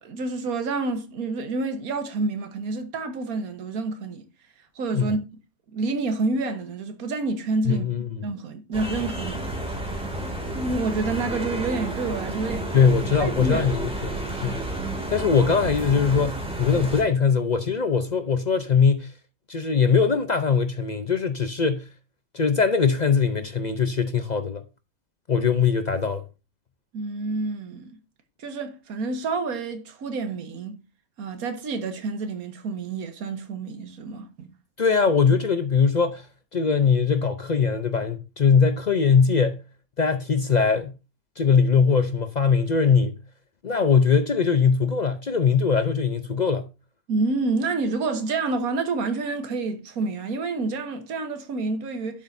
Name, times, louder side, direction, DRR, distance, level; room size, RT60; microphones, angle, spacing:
voice 1, 0.0-4.2 4.7-5.2 5.7-7.9 8.2-9.5 10.4-12.7 13.2-13.7 26.9-27.9 28.4-30.8 31.2-34.5 47.1-52.2, right 3 dB, 85° right, 1.6 m, -28 dB
voice 2, 7.7-8.2 12.7-14.7 15.1-19.1 19.5-21.9 22.3-24.6 25.3-26.2 34.8-36.3 36.5-39.6 40.0-40.9 41.4-43.2 43.6-46.6, left 5 dB, 50° left, 0.5 m, -21 dB
sound 1, 8.7-17.0, right 1 dB, 5° right, 2.3 m, -31 dB
11.5 x 7.4 x 2.6 m
omnidirectional pair, 1.5 m